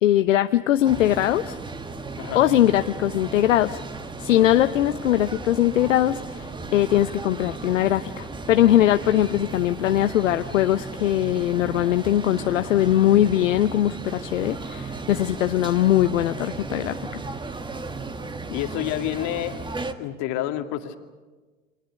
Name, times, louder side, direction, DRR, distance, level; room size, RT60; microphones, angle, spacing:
voice 1, 0.0-1.6 2.3-3.8 4.2-17.2, left 12 dB, 70° left, 10 dB, 0.8 m, -21 dB
sound 1, 0.8-19.9, right 3 dB, 10° right, 1.6 m, -35 dB
voice 2, 18.5-19.6 20.0-21.0, left 12 dB, 45° left, 6 dB, 2.3 m, -28 dB
30.0 x 25.5 x 6.6 m, 1.3 s
figure-of-eight pair, 85°, 40 cm